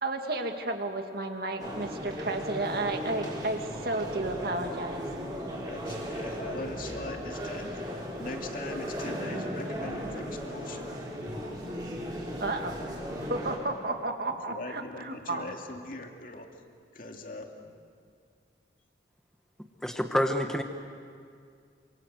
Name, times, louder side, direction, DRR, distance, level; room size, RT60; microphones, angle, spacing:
voice 1, 0.0-5.0 12.4-12.8 13.2-15.6, right 2 dB, 55° right, 4 dB, 2.3 m, -32 dB
sound 1, 1.6-13.6, equal, 20° right, 5.1 m, -36 dB
voice 2, 5.7-7.8 8.2-10.9 14.3-16.5 16.9-17.7, left 2 dB, 50° left, 3 dB, 2.6 m, -41 dB
voice 3, 19.8-20.6, equal, 5° left, 4 dB, 1.2 m, -27 dB
27.5 x 26.0 x 8.0 m, 2.3 s
head